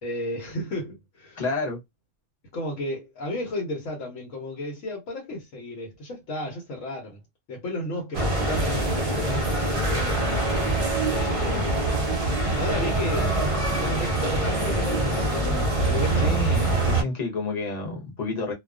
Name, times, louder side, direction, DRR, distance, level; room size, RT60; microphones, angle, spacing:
voice 1, 0.0-1.4 2.5-7.2 7.5-10.2 11.1-11.7 12.5-16.4, left 1 dB, 80° left, 1.2 m, -33 dB
voice 2, 1.4-1.8 16.2-18.5, left 3 dB, 40° left, 0.8 m, -29 dB
sound 1, 8.1-17.0, right 2 dB, 40° right, 0.5 m, -24 dB
2.4 x 2.3 x 2.3 m
omnidirectional pair, 1.3 m